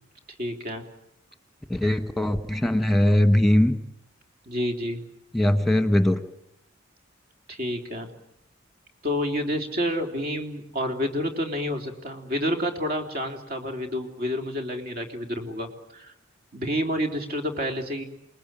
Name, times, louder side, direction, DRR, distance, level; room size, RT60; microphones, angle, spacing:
voice 1, 0.4-0.8 4.5-5.0 7.5-8.1 9.0-16.1 16.5-18.0, equal, 50° right, 4 dB, 3.6 m, -29 dB
voice 2, 1.7-3.8 5.3-6.2, left 1 dB, ahead, 8 dB, 1.5 m, -20 dB
28.5 x 20.5 x 9.1 m, 0.80 s
head